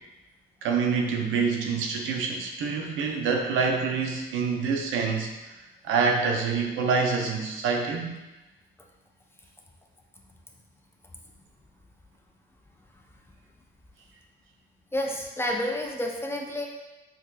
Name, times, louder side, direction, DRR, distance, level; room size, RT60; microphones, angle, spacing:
voice 1, 0.6-5.3 5.8-8.1, right 5 dB, 85° right, 2 dB, 0.6 m, -26 dB
voice 2, 14.9-16.7, left 1 dB, 10° left, 0 dB, 0.5 m, -29 dB
4.5 x 2.8 x 2.3 m, 1.1 s
cardioid pair, 90°, 20 cm